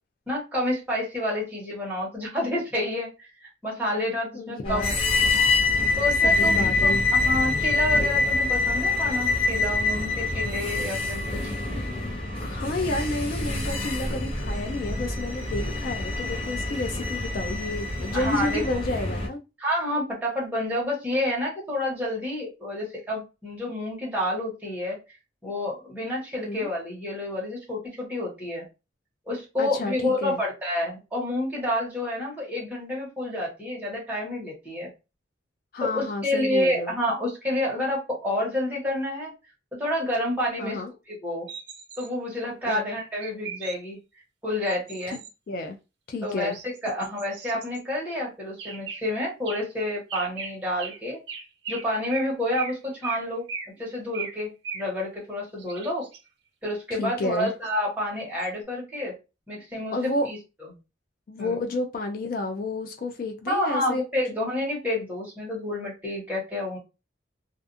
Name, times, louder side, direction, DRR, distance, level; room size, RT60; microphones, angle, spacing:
voice 1, 0.3-5.0 6.0-11.4 18.1-18.8 19.6-25.0 25.4-28.7 29.3-34.9 35.8-39.3 39.8-40.8 41.1-41.5 42.0-44.0 44.4-45.2 46.2-46.5 46.8-51.2 51.7-53.5 53.8-56.0 56.6-59.1 59.5-59.9 60.2-60.4 61.4-61.6 63.5-66.8, left 1 dB, 10° right, 1.1 m, -29 dB
voice 2, 4.3-4.9 6.2-7.0 12.4-19.4 26.4-26.7 29.6-30.4 35.7-37.0 40.6-40.9 42.6-42.8 45.5-45.8 46.1-46.6 47.0-47.1 57.0-57.5 59.9-60.3 61.3-64.0, left 2 dB, 50° left, 0.3 m, -30 dB
sound 1, 4.7-19.3, left 3 dB, 30° left, 0.7 m, -25 dB
sound 2, 41.5-42.1 43.2-43.8 44.7-45.3 46.3-47.8 48.6-49.0 49.4-49.6 50.1-50.5 50.8-51.0 51.3-51.8 52.1-52.3 52.5-52.7 53.0-53.2 53.5-53.7 54.1-54.3 54.6-54.9 55.6-56.2 57.2-57.7 58.4-58.5, right 6 dB, 70° right, 0.6 m, -37 dB
2.4 x 2.4 x 2.5 m
head